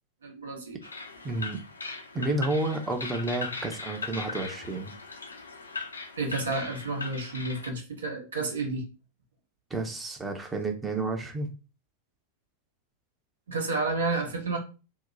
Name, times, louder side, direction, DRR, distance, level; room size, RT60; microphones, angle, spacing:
voice 1, 0.2-0.8 6.2-8.9 13.5-14.6, right 3 dB, 65° right, 1 dB, 1.0 m, -30 dB
sound 1, 0.8-7.7, left 4 dB, 75° left, 0.5 m, -39 dB
voice 2, 1.2-1.6 2.1-4.9 9.7-11.5, right 2 dB, 15° right, 4 dB, 0.7 m, -30 dB
2.9 x 2.1 x 3.7 m, 0.33 s
figure-of-eight pair, 90°, 0 cm